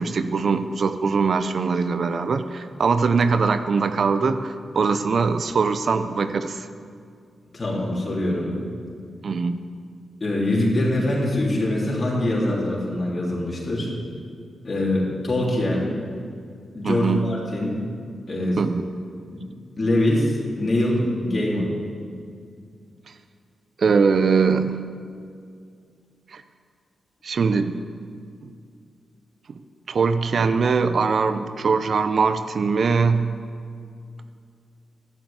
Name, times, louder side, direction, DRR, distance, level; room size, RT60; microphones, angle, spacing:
voice 1, 0.0-6.7 9.2-9.6 16.8-17.3 18.6-18.8 23.8-24.8 26.3-26.4 27.2-27.8 28.4-28.5 29.9-33.4, right 5 dB, 60° right, 10 dB, 0.6 m, -22 dB
voice 2, 7.5-8.6 10.2-13.9 14.6-15.9 16.7-17.8 18.3-18.6 19.3-19.4 19.8-21.7, left 1 dB, 40° left, -5 dB, 3.5 m, -23 dB
12.0 x 7.9 x 8.0 m, 2.3 s
cardioid pair, 60°, 0 cm